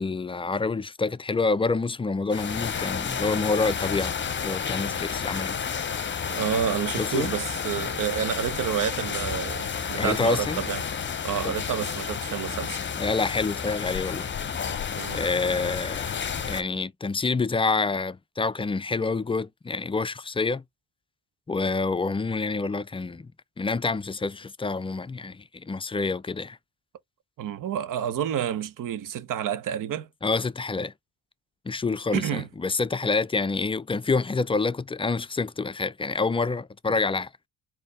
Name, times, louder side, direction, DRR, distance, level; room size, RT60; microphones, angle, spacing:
voice 1, 0.0-4.2 4.4-5.6 7.0-7.3 10.0-10.6 11.4-11.5 13.0-14.3 15.1-16.2 16.5-20.6 21.5-23.3 23.6-26.6 30.2-30.9 31.7-37.3, left 4 dB, 15° left, 0.4 m, -27 dB
sound 1, 2.3-16.6, left 7 dB, 30° left, 0.8 m, -31 dB
voice 2, 6.3-10.9 11.2-12.8 14.9-15.2 27.4-30.1 32.1-32.5, right 9 dB, 65° right, 0.8 m, -29 dB
4.0 x 2.8 x 3.2 m
supercardioid pair, 55°, 35 cm